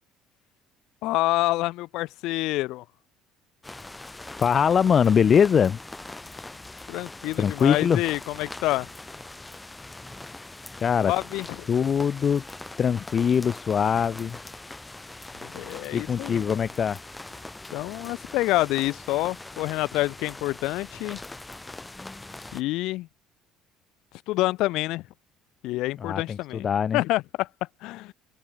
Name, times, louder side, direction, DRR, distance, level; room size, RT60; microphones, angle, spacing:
voice 1, 1.0-2.8 6.9-8.9 11.0-11.7 15.4-16.6 17.7-21.2 22.5-23.1 24.3-25.0 25.6-26.7 26.9-27.5 27.8-28.1, left 18 dB, 70° left, 2.7 m, -27 dB
sound 1, 3.6-22.6, left 2 dB, 10° left, 5.7 m, -42 dB
voice 2, 4.4-5.8 7.4-8.0 10.8-11.1 11.7-12.4 12.8-14.4 15.9-17.0 26.0-27.0, left 7 dB, 30° left, 0.7 m, -22 dB
cardioid pair, 140°, 0 cm